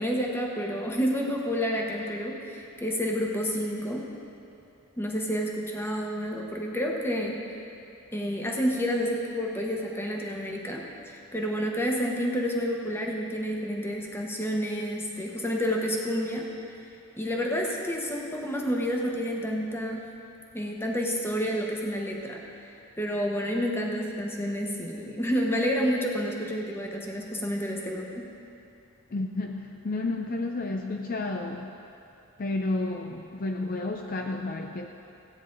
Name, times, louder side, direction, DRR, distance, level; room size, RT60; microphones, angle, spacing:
voice 1, 0.0-4.1 5.0-7.4 8.1-16.5 17.2-20.0 20.5-28.3, equal, 10° left, -1 dB, 1.1 m, -29 dB
voice 2, 29.1-31.7 32.4-34.9, left 2 dB, 40° left, 3 dB, 0.5 m, -31 dB
16.0 x 9.2 x 3.9 m, 2.7 s
head